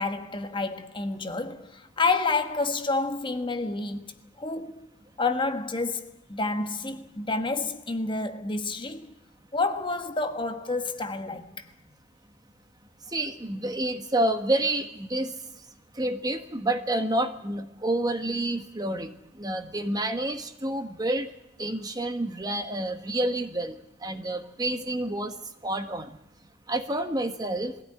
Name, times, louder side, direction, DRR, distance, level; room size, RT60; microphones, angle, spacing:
voice 1, 0.0-4.1 4.4-4.9 5.2-6.0 6.3-9.1 9.5-11.7, left 3 dB, 25° left, 1.4 m, -29 dB
voice 2, 13.1-15.3 16.0-19.1 19.4-21.3 21.6-23.7 24.0-25.3 25.6-26.1 26.7-27.7, right 1 dB, 20° right, 1.4 m, -28 dB
21.5 x 16.5 x 9.9 m
head